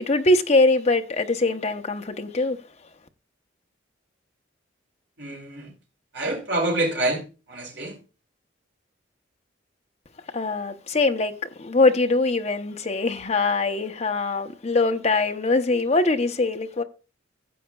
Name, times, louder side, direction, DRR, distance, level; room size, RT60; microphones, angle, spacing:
voice 1, 0.0-2.6 10.3-16.8, left 2 dB, 35° left, 0.7 m, -22 dB
voice 2, 5.2-5.7 6.1-7.2 7.5-8.0, right 1 dB, 60° right, 2.8 m, -26 dB
15.5 x 7.7 x 2.3 m
head